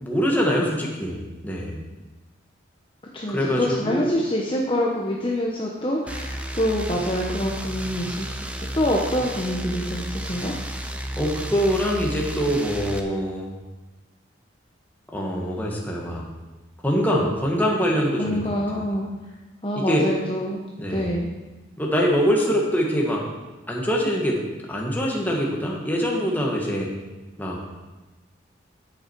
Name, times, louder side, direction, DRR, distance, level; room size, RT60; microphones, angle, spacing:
voice 1, 0.0-1.8 3.3-4.1 11.2-13.5 15.1-16.3 16.8-18.8 19.7-20.1 20.8-21.2 21.8-23.3 23.7-24.4 24.7-26.9 27.4-27.6, equal, 10° left, -2 dB, 1.7 m, -24 dB
voice 2, 3.1-8.4 8.7-10.5 18.2-19.1 19.6-20.6 20.9-21.3, equal, 25° left, -2 dB, 0.9 m, -26 dB
sound 1, 6.1-13.0, right 1 dB, 5° right, 0.6 m, -32 dB
10.0 x 8.5 x 4.6 m, 1.2 s
head